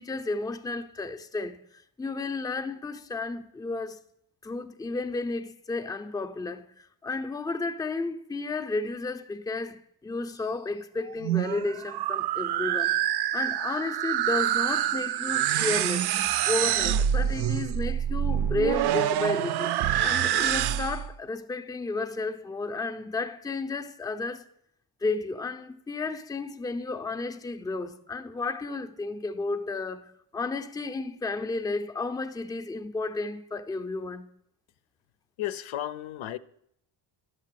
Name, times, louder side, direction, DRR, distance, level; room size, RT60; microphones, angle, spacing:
voice 1, 0.0-4.0 4.4-13.0 13.3-16.1 16.5-19.7 20.0-24.5 25.0-30.0 30.3-34.2, left 3 dB, 10° left, 0.5 m, -32 dB
sound 1, 11.1-21.1, right 10 dB, 60° right, 0.5 m, -26 dB
voice 2, 35.4-36.4, left 12 dB, 90° left, 0.7 m, -33 dB
11.5 x 6.6 x 7.5 m
wide cardioid pair, 155°, 46 cm